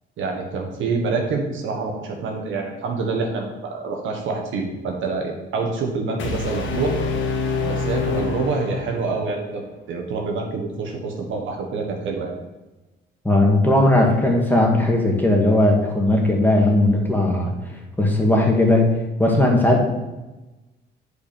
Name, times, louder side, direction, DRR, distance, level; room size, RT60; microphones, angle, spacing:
voice 1, 0.2-7.0 7.6-12.3, right 4 dB, 75° right, 1 dB, 1.5 m, -26 dB
sound 1, 6.2-9.3, left 4 dB, 75° left, 1.3 m, -26 dB
voice 2, 13.2-17.5 18.0-18.9 19.2-19.9, left 1 dB, 10° left, 0 dB, 1.9 m, -17 dB
8.3 x 5.0 x 5.2 m, 1.1 s
cardioid pair, 90°, 20 cm